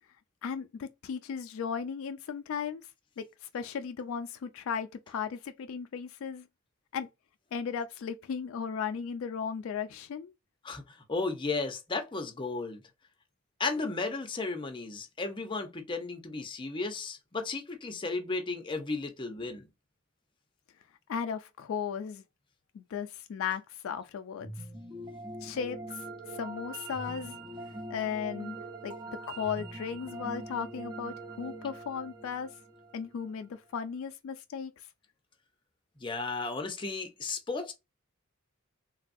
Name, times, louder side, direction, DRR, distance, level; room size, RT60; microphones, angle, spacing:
voice 1, 0.4-2.8 3.2-6.5 6.9-7.1 7.5-10.3 21.1-22.2 22.7-24.5 25.4-27.4 27.9-28.6 28.8-28.9 29.3-32.5 32.9-34.9, left 7 dB, 70° left, 0.3 m, -36 dB
voice 2, 11.1-12.8 13.6-19.6 36.0-37.7, left 3 dB, 25° left, 0.6 m, -34 dB
sound 1, 24.4-33.5, right 2 dB, 20° right, 0.6 m, -43 dB
3.3 x 2.2 x 2.5 m
head